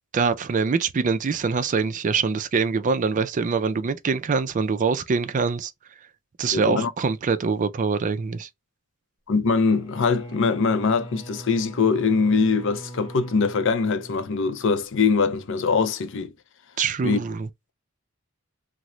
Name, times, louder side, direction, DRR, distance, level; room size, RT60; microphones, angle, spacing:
voice 1, 0.1-5.7 6.4-8.5 16.8-17.5, right 5 dB, 35° right, 0.4 m, -24 dB
voice 2, 6.5-6.9 9.3-16.3 17.0-17.2, left 4 dB, 60° left, 0.5 m, -22 dB
Bowed string instrument, 9.6-14.9, right 1 dB, 25° left, 1.1 m, -41 dB
3.0 x 2.0 x 3.7 m
head